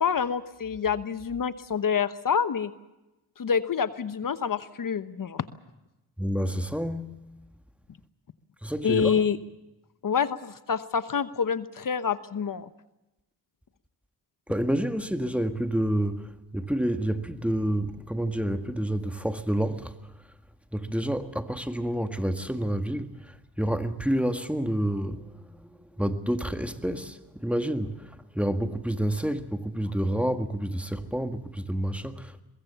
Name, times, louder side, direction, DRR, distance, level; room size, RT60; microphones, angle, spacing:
voice 1, 0.0-2.7 3.4-5.5 8.8-9.4 10.0-12.7, left 6 dB, 55° left, 1.1 m, -27 dB
voice 2, 6.2-7.1 8.6-9.2 14.5-19.9 20.7-32.4, right 1 dB, 5° right, 1.8 m, -29 dB
23.0 x 22.0 x 6.9 m
cardioid pair, 70°, 39 cm